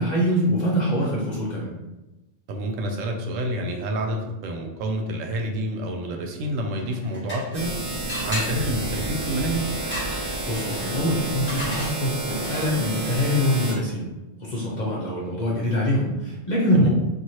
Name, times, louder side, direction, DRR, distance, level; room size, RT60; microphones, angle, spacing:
voice 1, 0.0-1.7 10.1-14.1 14.4-16.9, equal, 50° left, -5 dB, 0.6 m, -24 dB
voice 2, 2.5-7.7 8.2-9.6 16.7-16.9, right 1 dB, 90° right, 2 dB, 1.0 m, -28 dB
sound 1, 6.8-7.7 8.1-12.9, left 1 dB, 10° left, 1.2 m, -36 dB
sound 2, 7.5-13.7, right 2 dB, 75° right, 1.3 m, -30 dB
3.0 x 2.7 x 2.7 m, 1.0 s
omnidirectional pair, 1.3 m